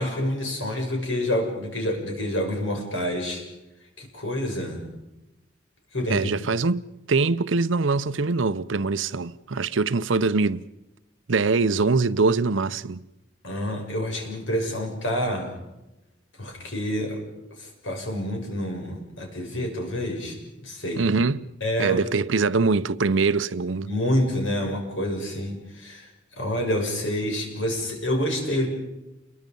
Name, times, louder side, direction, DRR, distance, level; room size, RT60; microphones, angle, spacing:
voice 1, 0.0-3.4 4.0-4.8 5.9-6.3 13.4-15.5 16.4-17.2 17.6-21.0 21.6-22.0 23.9-26.1 26.4-28.7, equal, 75° left, 6.8 m, -28 dB
voice 2, 6.1-10.6 11.3-13.0 20.9-21.5 21.8-23.9, right 4 dB, 75° right, 0.7 m, -23 dB
29.0 x 23.0 x 5.4 m
head